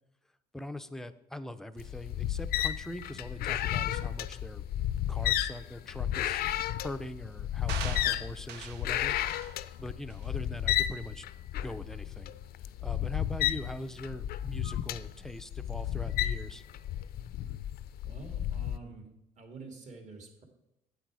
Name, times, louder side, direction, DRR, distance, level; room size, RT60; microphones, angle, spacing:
voice 1, 0.5-4.6 5.1-6.4 6.8-9.2 9.8-11.2 11.6-12.3 12.8-16.6, left 1 dB, 5° left, 10 dB, 0.5 m, -42 dB
sound 1, 1.8-18.8, left 12 dB, 65° left, 0.5 m, -33 dB
sound 2, 7.7-8.9 9.3-9.6 10.1-10.2, right 7 dB, 80° right, 0.8 m, -41 dB
voice 2, 18.0-19.1 19.4-20.4, right 3 dB, 45° right, 4 dB, 2.0 m, -47 dB
8.4 x 7.9 x 4.8 m, 0.86 s
cardioid pair, 110°, 17 cm